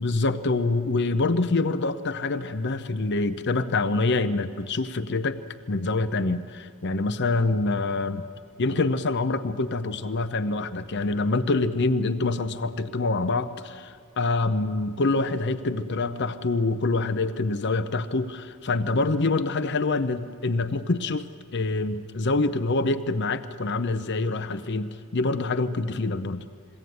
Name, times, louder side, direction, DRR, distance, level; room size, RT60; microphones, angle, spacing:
voice 1, 0.0-5.4 5.7-8.2 8.6-21.3 21.5-26.4, left 3 dB, 55° left, 10 dB, 0.7 m, -26 dB
22.0 x 16.5 x 9.5 m, 2.1 s
head